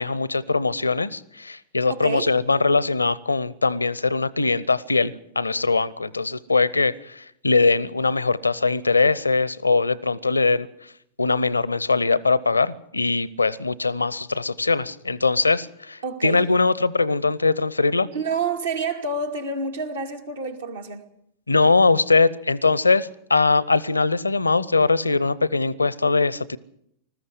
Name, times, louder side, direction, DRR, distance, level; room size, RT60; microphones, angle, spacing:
voice 1, 0.0-10.7 11.2-18.1 21.5-26.6, left 3 dB, 80° left, 22 dB, 0.7 m, -21 dB
voice 2, 1.9-2.3 16.0-16.4 18.1-21.1, right 4 dB, 65° right, 4 dB, 2.4 m, -28 dB
20.0 x 14.5 x 9.8 m, 0.73 s
figure-of-eight pair, 90°, 0 cm